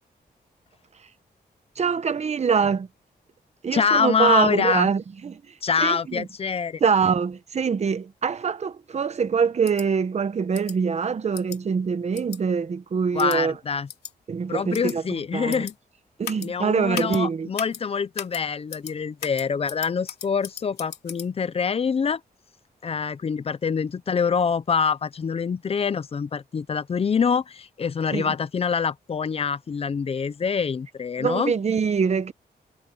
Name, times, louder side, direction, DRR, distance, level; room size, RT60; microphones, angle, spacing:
voice 1, 1.8-2.9 3.6-5.4 5.8-6.3 6.8-13.5 14.3-15.0 15.3-15.6 16.2-17.5 28.1-28.3 31.2-32.3, right 6 dB, 40° right, 1.1 m, -24 dB
voice 2, 3.7-4.9 5.6-6.8 13.1-13.9 14.5-15.7 16.4-22.2 22.8-31.5, left 6 dB, 35° left, 0.6 m, -25 dB
sound 1, 9.6-9.9 10.5-10.8 11.3-11.6 12.1-12.4 13.2-13.4 13.9-14.1 14.7-15.0 15.5-15.7 16.2-16.5 16.9-17.2 17.6-17.8 18.2-18.4 18.7-18.9 19.2-21.3, left 8 dB, 75° left, 3.1 m, -36 dB
wide cardioid pair, 145°, 17 cm